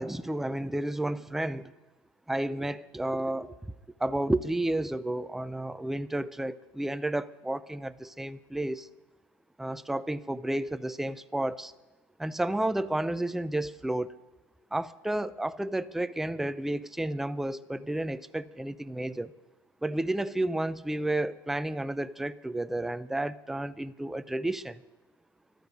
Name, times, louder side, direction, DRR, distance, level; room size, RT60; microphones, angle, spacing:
voice 1, 0.0-1.7 2.3-3.7 4.0-8.9 9.6-11.7 12.2-14.1 14.7-19.3 19.8-24.8, right 1 dB, 5° right, 0.4 m, -31 dB
12.0 x 9.2 x 9.5 m
hypercardioid pair, 90°, 13 cm